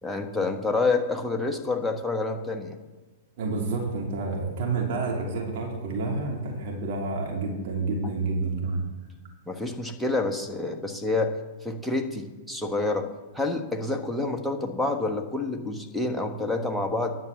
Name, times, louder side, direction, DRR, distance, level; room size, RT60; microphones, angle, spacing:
voice 1, 0.0-2.8 9.5-11.4 11.6-17.1, left 3 dB, ahead, 1 dB, 1.4 m, -28 dB
voice 2, 3.4-8.8, right 3 dB, 55° right, -1 dB, 3.0 m, -29 dB
10.5 x 7.7 x 7.2 m, 1.3 s
figure-of-eight pair, 105°, 0 cm